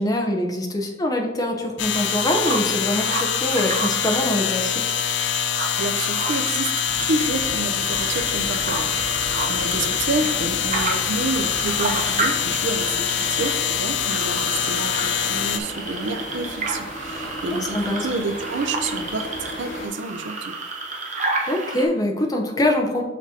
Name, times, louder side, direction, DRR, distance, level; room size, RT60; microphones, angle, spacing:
voice 1, 0.0-4.8 17.5-18.1 21.5-23.0, left 1 dB, 20° left, 2 dB, 0.7 m, -24 dB
sound 1, 1.8-15.6, left 9 dB, 65° left, 0.4 m, -24 dB
sound 2, 1.9-21.9, right 3 dB, 40° right, 0.8 m, -31 dB
voice 2, 5.8-6.7 7.0-9.2 9.5-20.6, right 3 dB, 75° right, 7 dB, 0.6 m, -29 dB
sound 3, 6.9-19.9, left 1 dB, 85° left, 1.7 m, -36 dB
5.9 x 5.9 x 2.8 m, 1.1 s
head